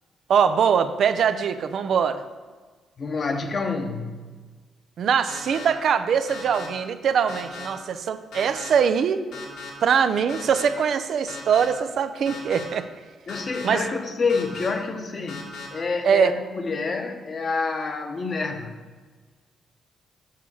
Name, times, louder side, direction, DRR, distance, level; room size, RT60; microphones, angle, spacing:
voice 1, 0.3-2.2 5.0-9.2 9.8-12.9 13.6-13.8 16.0-16.3, right 7 dB, 65° right, 10 dB, 0.5 m, -22 dB
voice 2, 3.0-4.3 13.3-18.7, left 4 dB, 45° left, 5 dB, 1.0 m, -28 dB
sound 1, 5.3-5.7 6.3-6.7 7.3-7.7 8.3-8.7 9.3-9.7 10.3-10.7 11.3-11.7 12.3-12.6 13.3-13.7 14.3-14.7 15.3-15.7, left 4 dB, 80° left, 1.9 m, -37 dB
7.4 x 4.6 x 6.1 m, 1.4 s
cardioid pair, 75°, 0 cm